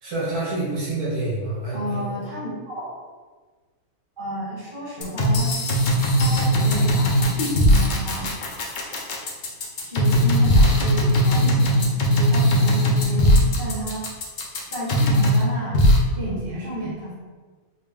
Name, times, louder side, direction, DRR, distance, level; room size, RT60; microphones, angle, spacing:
voice 1, 0.0-2.2, right 2 dB, 85° right, -7 dB, 1.5 m, -27 dB
voice 2, 1.7-2.9 4.2-5.6 6.1-8.3 9.8-14.0 14.7-15.8 16.1-17.1, equal, 20° right, -10 dB, 1.0 m, -31 dB
sound 1, 5.0-15.4 15.7-16.0, equal, 80° left, 0.4 m, -19 dB
3.8 x 2.1 x 3.5 m, 1.4 s
omnidirectional pair, 1.6 m